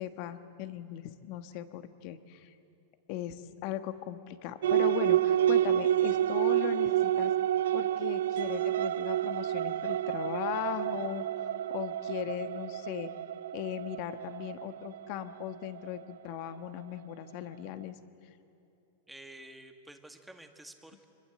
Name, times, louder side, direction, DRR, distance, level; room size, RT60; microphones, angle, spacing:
voice 1, 0.0-2.5 3.1-7.3 7.7-11.2 11.7-13.1 13.5-17.9, left 12 dB, 50° left, 10 dB, 1.3 m, -38 dB
sound 1, 4.6-16.6, right 12 dB, 80° right, 0.5 m, -29 dB
voice 2, 19.1-21.0, right 1 dB, 5° right, 6 dB, 1.8 m, -50 dB
25.0 x 21.5 x 7.8 m, 2.8 s
hypercardioid pair, 130°, 0 cm